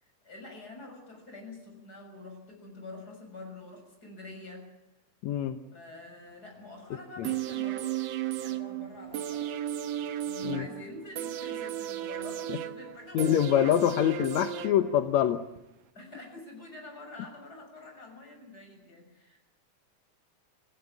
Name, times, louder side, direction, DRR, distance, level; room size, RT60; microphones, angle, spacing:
voice 1, 0.0-4.7 5.7-9.5 10.0-13.6 16.0-19.4, left 2 dB, 30° left, 3 dB, 7.2 m, -46 dB
voice 2, 5.2-5.6 7.2-7.3 10.4-10.7 12.5-12.6 13.1-15.4, left 10 dB, 75° left, 9 dB, 2.3 m, -25 dB
sound 1, 7.2-15.2 15.6-15.7, right 10 dB, 65° right, 2.1 m, -35 dB
27.0 x 16.0 x 8.5 m, 0.94 s
omnidirectional pair, 3.3 m